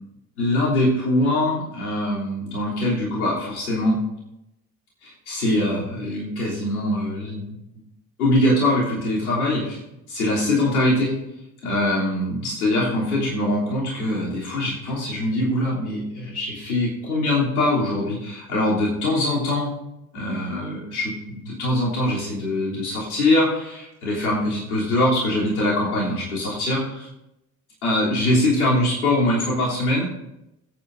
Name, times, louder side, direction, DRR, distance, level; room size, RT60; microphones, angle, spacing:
voice 1, 0.4-4.0 5.0-7.5 8.2-9.8 10.1-11.1 11.6-19.7 20.1-27.1 27.8-30.1, left 1 dB, 80° left, -6 dB, 3.3 m, -23 dB
21.5 x 8.8 x 2.6 m, 0.88 s
figure-of-eight pair, 55°, 43 cm